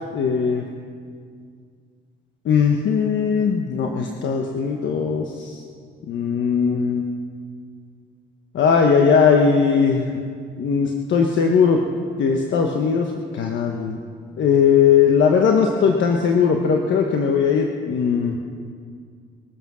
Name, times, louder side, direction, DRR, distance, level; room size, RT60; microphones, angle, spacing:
voice 1, 0.1-0.7 2.4-5.6 6.1-7.0 8.5-10.2 10.6-11.8 12.2-14.0 14.4-18.4, left 6 dB, 70° left, 2 dB, 1.2 m, -19 dB
22.0 x 9.4 x 6.2 m, 2.1 s
cardioid pair, 90°, 20 cm